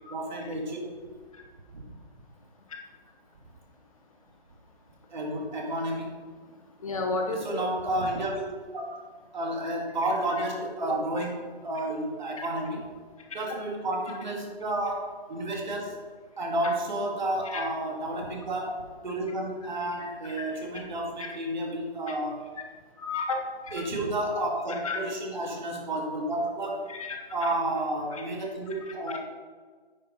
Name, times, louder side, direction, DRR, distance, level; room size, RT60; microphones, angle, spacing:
voice 1, 0.1-1.0 1.7-1.9 5.1-6.2 7.3-8.5 8.7-9.0 9.3-12.9 13.3-16.0 16.4-22.5 23.7-26.9 27.3-29.2, right 1 dB, 45° right, 1 dB, 2.0 m, -31 dB
voice 2, 6.8-7.6 12.4-12.5 17.4-17.6 20.4-20.5 23.0-23.4 24.8-25.0 26.9-27.5 28.1-28.2 28.8-29.2, left 3 dB, 35° left, 2 dB, 1.0 m, -32 dB
9.4 x 5.4 x 5.3 m, 1.5 s
figure-of-eight pair, 145°, 31 cm